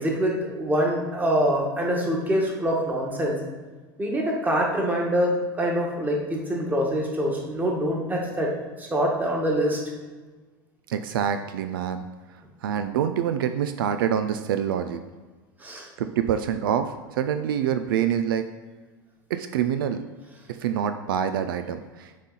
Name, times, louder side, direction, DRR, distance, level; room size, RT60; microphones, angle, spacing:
voice 1, 0.0-3.4 4.0-8.5 8.8-9.8 15.6-15.9, equal, 15° right, -1 dB, 1.5 m, -25 dB
voice 2, 10.9-12.0 12.6-15.0 16.0-18.5 19.3-20.0 20.6-22.2, right 9 dB, 80° right, 9 dB, 0.4 m, -26 dB
6.1 x 4.1 x 4.0 m, 1.3 s
hypercardioid pair, 95°, 11 cm